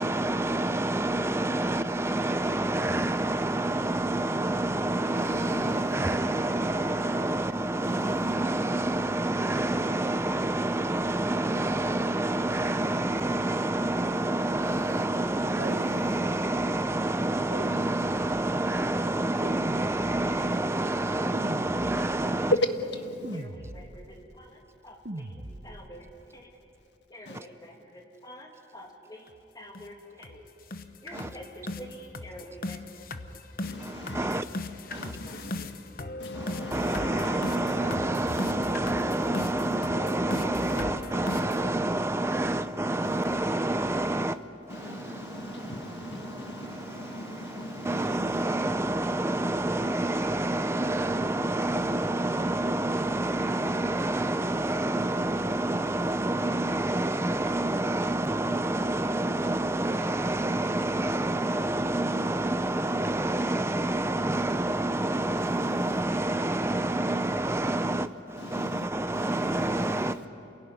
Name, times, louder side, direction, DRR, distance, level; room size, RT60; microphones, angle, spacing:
voice 1, 0.0-22.5 27.3-27.4 31.1-31.3 33.8-34.5 34.9-35.1 36.3-44.4 44.7-70.2, right 1 dB, 15° right, 0.6 m, -28 dB
sound 1, 4.3-7.3, right 3 dB, 80° right, 0.9 m, -47 dB
voice 2, 5.2-5.9 7.8-8.3 14.6-15.0 15.6-16.2 22.5-23.4 27.2-27.4 31.1-31.3 33.6-34.4 34.9-35.7 36.2-38.1 43.0-43.4 44.7-48.4 65.4-66.0 68.4-68.9 69.1-70.3, left 1 dB, 75° left, 1.5 m, -37 dB
sound 2, 15.6-16.8 17.5-18.7 19.4-20.5 21.3-22.3 23.2-24.2 25.0-25.9, right 1 dB, 50° right, 1.0 m, -40 dB
voice 3, 23.3-26.5 27.1-30.5 31.0-33.1 35.2-35.5, equal, 20° left, 2.6 m, -47 dB
sound 3, 29.3-29.4 29.7-29.9 30.2-30.4 30.7-41.7, left 2 dB, 50° left, 1.0 m, -37 dB
28.0 x 17.0 x 9.7 m
head